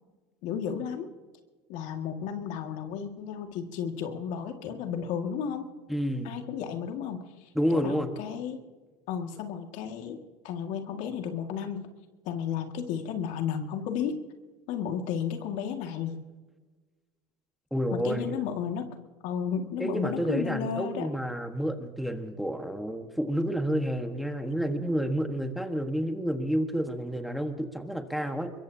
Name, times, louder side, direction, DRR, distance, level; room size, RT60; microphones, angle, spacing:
voice 1, 0.4-1.1 1.7-5.7 6.2-7.3 7.7-8.6 9.1-10.2 10.4-11.9 12.3-14.2 14.7-16.2 17.9-18.9 19.2-21.1, left 8 dB, 65° left, 4 dB, 2.0 m, -33 dB
voice 2, 5.9-6.3 7.5-8.1 17.7-18.4 19.8-28.5, equal, ahead, 6 dB, 1.5 m, -30 dB
23.0 x 22.5 x 2.8 m, 1.3 s
supercardioid pair, 105°, 14 cm